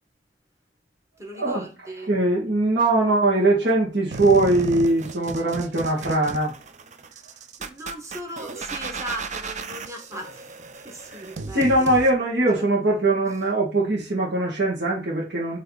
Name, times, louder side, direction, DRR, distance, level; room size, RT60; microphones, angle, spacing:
voice 1, 1.2-2.1 7.6-11.9 12.5-12.7, equal, 15° right, 1.6 m, -38 dB
voice 2, 2.1-6.5 11.1-11.2 11.5-15.6, right 2 dB, 75° right, 2.0 m, -21 dB
sound 1, 4.1-12.1, right 4 dB, 45° right, 0.6 m, -35 dB
7.9 x 3.5 x 4.0 m
head